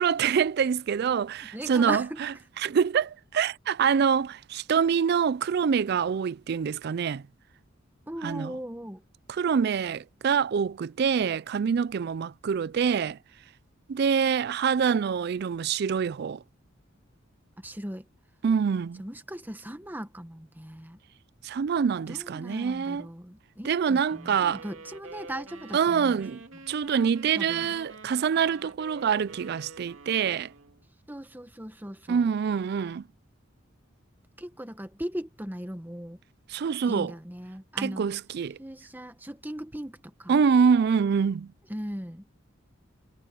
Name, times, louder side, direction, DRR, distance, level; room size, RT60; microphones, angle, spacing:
voice 1, 0.0-2.3 2.6-7.2 8.2-8.5 9.3-13.2 13.9-16.4 18.4-19.0 21.4-23.0 23.6-24.6 25.7-26.4 26.7-30.5 32.1-33.0 36.5-37.1 37.8-38.6 40.3-41.5, right 6 dB, 55° right, 0.3 m, -25 dB
voice 2, 1.4-2.2 8.1-9.0 17.6-18.0 19.0-21.0 22.1-26.2 27.3-27.8 31.1-32.3 34.4-36.2 36.9-38.0 38.6-40.4 41.7-42.2, equal, 10° right, 1.5 m, -38 dB
sound 1, 24.0-30.8, right 3 dB, 80° right, 2.6 m, -47 dB
head